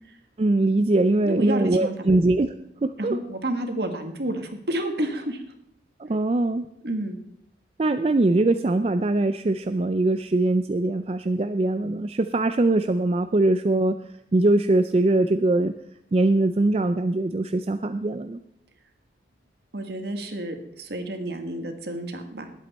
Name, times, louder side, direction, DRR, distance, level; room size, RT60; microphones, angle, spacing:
voice 1, 0.4-2.5 2.8-3.2 6.0-6.7 7.8-14.0 14.3-15.7 16.1-18.4, right 2 dB, 35° right, 9 dB, 0.4 m, -22 dB
voice 2, 1.2-2.1 3.0-5.4 6.8-7.2 19.7-22.6, right 1 dB, 60° right, 6 dB, 1.7 m, -30 dB
19.5 x 8.3 x 4.3 m, 0.74 s
head